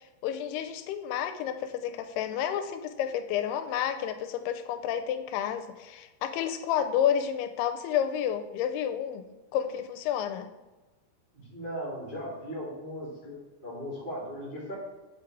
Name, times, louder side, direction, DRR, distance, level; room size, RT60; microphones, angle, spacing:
voice 1, 0.0-9.3 9.5-10.5, left 9 dB, 85° left, 8 dB, 2.5 m, -30 dB
voice 2, 11.3-14.7, equal, 30° right, -7 dB, 1.0 m, -38 dB
8.2 x 4.8 x 4.6 m, 1.1 s
omnidirectional pair, 4.6 m